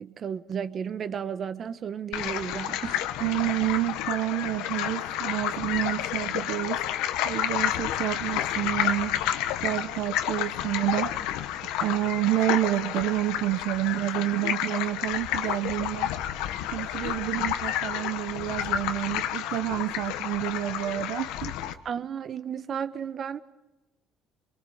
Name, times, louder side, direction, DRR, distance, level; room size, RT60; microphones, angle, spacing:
voice 1, 0.0-3.0 17.4-17.5 21.8-23.4, right 7 dB, 50° right, 1.2 m, -33 dB
sound 1, 2.1-21.7, left 11 dB, 85° left, 1.2 m, -30 dB
voice 2, 3.2-9.2 9.6-11.1 11.8-16.1 16.7-21.5, right 16 dB, 75° right, 0.8 m, -29 dB
25.0 x 23.0 x 5.7 m
supercardioid pair, 85°, 0 cm